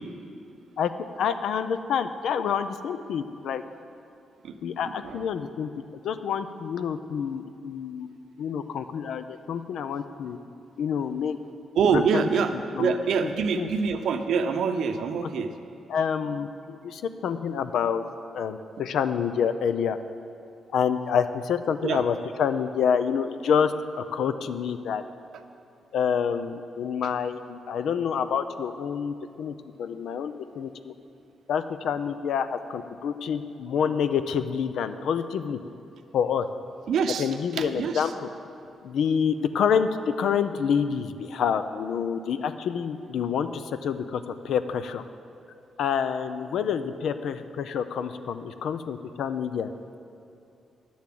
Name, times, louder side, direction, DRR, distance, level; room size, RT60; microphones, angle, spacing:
voice 1, 1.2-3.6 4.6-5.7 6.0-8.1 8.4-10.4 10.8-11.4 11.9-12.3 12.7-12.9 13.2-13.7 15.9-18.0 18.3-20.0 20.7-25.0 25.9-30.9 31.5-35.6 36.1-36.5 37.2-38.3 38.8-45.0 45.8-49.7, left 7 dB, 75° left, 11 dB, 0.5 m, -27 dB
voice 2, 4.8-5.2 11.7-15.5 21.8-22.0 36.9-38.1, right 5 dB, 75° right, 8 dB, 0.7 m, -26 dB
10.5 x 7.1 x 7.7 m, 2.7 s
cardioid pair, 95°, 0 cm